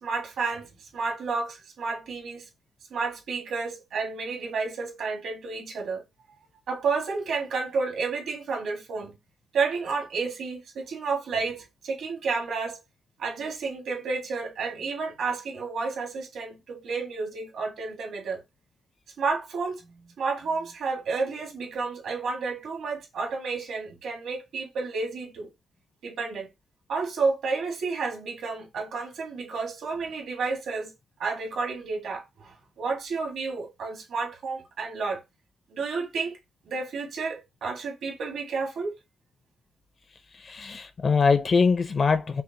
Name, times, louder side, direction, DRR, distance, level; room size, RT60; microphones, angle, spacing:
voice 1, 0.0-2.4 2.9-6.0 6.7-9.1 9.5-12.8 13.2-18.4 19.2-19.9 20.2-25.5 26.0-26.5 26.9-30.9 31.2-35.2 35.7-36.4 36.6-39.0, right 4 dB, 70° right, 1.3 m, -31 dB
voice 2, 40.4-42.4, left 5 dB, 40° left, 0.5 m, -23 dB
5.7 x 2.0 x 2.7 m
cardioid pair, 140°, 0 cm